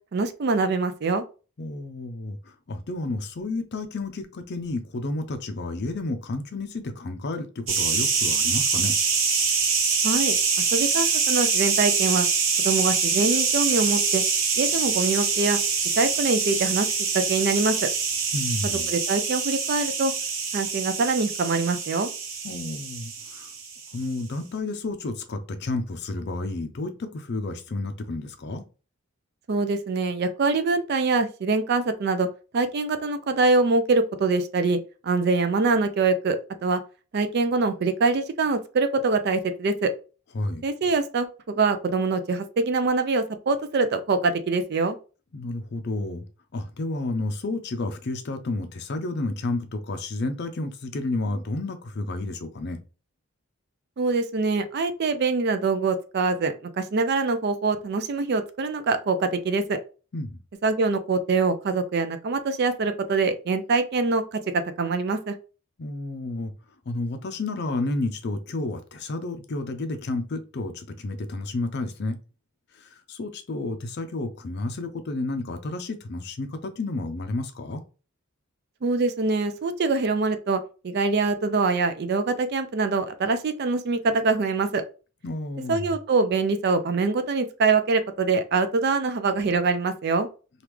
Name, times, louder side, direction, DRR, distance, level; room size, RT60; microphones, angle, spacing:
voice 1, 0.1-1.2 10.0-10.4 10.7-12.3 12.6-14.2 14.6-15.6 16.0-16.9 17.1-17.9 18.9-20.1 20.5-22.1 29.5-32.3 32.5-36.8 37.1-39.9 40.6-45.0 54.0-59.8 60.6-65.3 78.8-84.8 85.7-90.3, right 3 dB, 45° right, 0.4 m, -24 dB
voice 2, 1.6-9.0 18.3-18.9 22.4-23.5 23.9-28.6 40.3-40.6 45.3-46.2 46.5-52.8 60.1-60.4 65.8-66.5 66.9-72.2 72.7-77.8 85.2-85.9, left 2 dB, 50° left, 0.5 m, -31 dB
sound 1, 7.7-24.0, right 5 dB, 70° right, 1.0 m, -25 dB
3.0 x 2.4 x 3.4 m
head